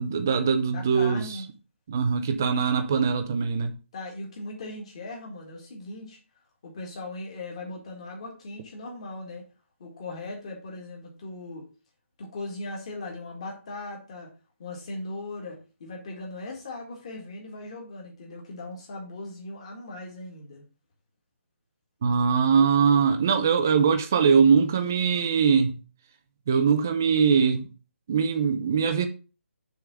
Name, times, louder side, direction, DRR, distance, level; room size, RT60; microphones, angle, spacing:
voice 1, 0.0-1.4 1.9-3.7 22.0-25.8 26.5-27.7 28.1-29.1, right 6 dB, 15° right, 0.3 m, -22 dB
voice 2, 0.7-1.5 3.9-6.2 6.6-9.4 9.8-11.7 12.2-14.3 14.6-20.6, left 2 dB, 25° left, 1.8 m, -39 dB
6.5 x 3.5 x 6.1 m
hypercardioid pair, 180°, 7 cm